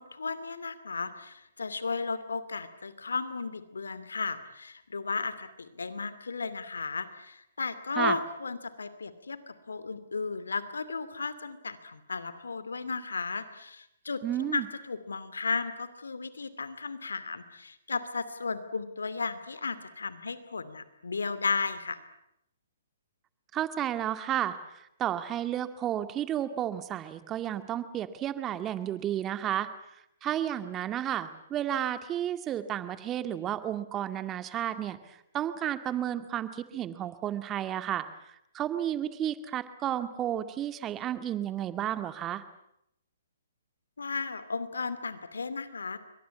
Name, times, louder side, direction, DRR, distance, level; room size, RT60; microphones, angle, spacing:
voice 1, 0.0-22.0 44.0-46.0, left 4 dB, 80° left, 14 dB, 2.6 m, -34 dB
voice 2, 14.2-14.7 23.5-29.7 30.2-42.4, right 11 dB, 20° right, 11 dB, 2.0 m, -32 dB
24.0 x 19.0 x 9.7 m, 0.78 s
hypercardioid pair, 135°, 0 cm